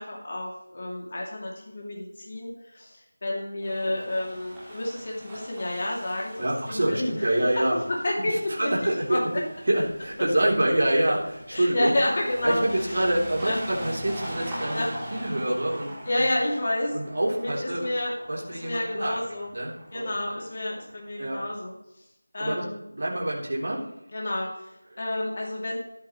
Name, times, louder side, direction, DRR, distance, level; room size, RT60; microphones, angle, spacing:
voice 1, 0.0-8.7 9.1-9.4 11.5-13.0 13.4-13.6 14.7-14.9 16.0-16.9 17.4-18.1 18.5-19.5 19.9-21.7 22.3-22.8 24.1-25.8, left 1 dB, 35° left, -2 dB, 2.7 m, -30 dB
sound 1, 3.6-21.2, right 1 dB, 5° right, 2.8 m, -42 dB
voice 2, 6.4-7.8 8.2-9.2 9.7-11.9 12.4-14.8 15.1-15.9 16.9-17.8 18.3-19.2 19.5-20.1 21.2-21.4 22.4-22.6 23.0-23.8, right 1 dB, 50° right, -3 dB, 3.6 m, -26 dB
14.0 x 11.0 x 3.2 m, 0.85 s
figure-of-eight pair, 170°, 0 cm